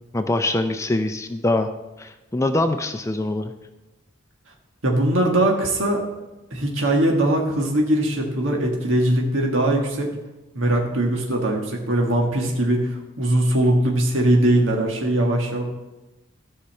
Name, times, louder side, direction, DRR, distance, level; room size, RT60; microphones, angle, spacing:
voice 1, 0.1-1.7 2.0-3.5, left 2 dB, 15° left, 8 dB, 0.4 m, -23 dB
voice 2, 4.8-6.0 6.5-10.1 10.5-15.6, right 1 dB, 80° right, 0 dB, 1.6 m, -21 dB
13.0 x 5.5 x 7.4 m, 1.1 s
head